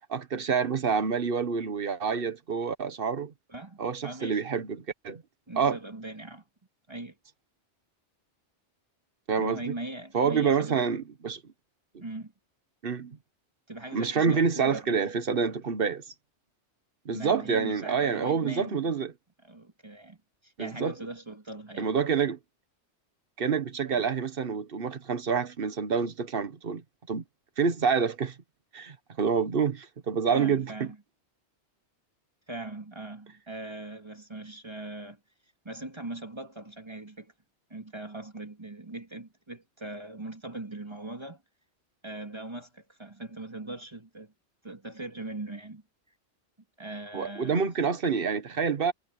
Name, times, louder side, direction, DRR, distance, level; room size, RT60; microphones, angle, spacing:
voice 1, 0.1-3.3 3.8-5.2 5.6-5.8 9.3-9.6 10.1-11.4 12.8-13.2 13.9-16.0 17.0-19.1 20.6-20.9 21.8-22.4 23.4-26.8 27.1-27.2 27.6-28.4 28.7-30.9 47.1-48.9, right 6 dB, 50° right, 1.4 m, -27 dB
voice 2, 3.5-4.4 5.5-6.4 6.9-7.2 9.4-10.9 12.0-12.3 13.7-15.0 17.1-18.9 19.4-20.2 20.4-21.9 23.9-24.1 30.3-31.0 32.5-35.2 35.6-37.3 37.7-41.4 42.0-44.3 44.6-45.8 46.8-47.9, right 2 dB, 25° right, 2.2 m, -40 dB
omnidirectional pair, 1.2 m